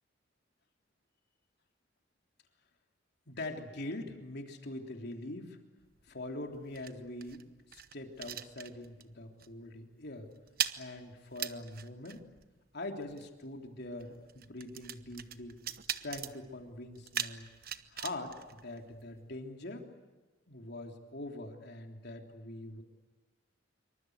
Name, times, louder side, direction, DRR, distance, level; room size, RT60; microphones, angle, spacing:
voice 1, 3.3-5.6 6.0-10.3 10.8-12.3 12.7-15.6 16.0-17.5 17.9-19.9 20.5-22.8, left 2 dB, 60° left, 3 dB, 3.5 m, -43 dB
sound 1, 5.8-9.1 9.4-9.7 9.9-19.3, right 10 dB, 50° right, 1.1 m, -42 dB
26.5 x 24.5 x 8.1 m, 1.3 s
head